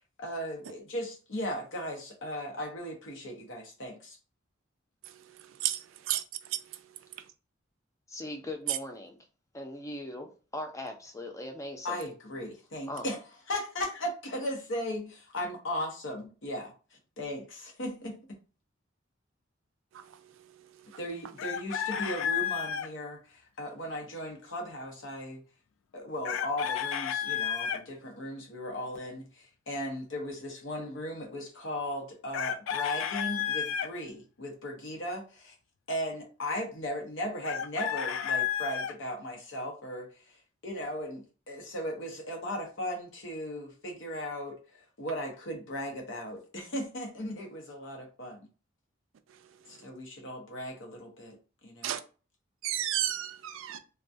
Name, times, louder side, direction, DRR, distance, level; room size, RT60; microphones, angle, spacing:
voice 1, 0.2-4.2 11.8-13.2 13.5-17.4 17.8-18.2 21.0-25.4 25.9-35.6 35.9-40.4 40.6-48.5 49.7-51.4 51.6-51.9, equal, 70° left, 0.8 m, -37 dB
voice 2, 5.6-6.2 6.5-6.6 51.8-52.0 52.6-53.8, right 12 dB, 75° right, 0.3 m, -31 dB
voice 3, 8.1-9.2 9.5-12.0 12.9-13.1, left 1 dB, 15° left, 0.4 m, -39 dB
Chicken rooster, 21.4-22.9 26.2-27.8 32.3-33.9 37.4-38.9, left 9 dB, 85° left, 0.3 m, -31 dB
2.3 x 2.2 x 2.6 m
head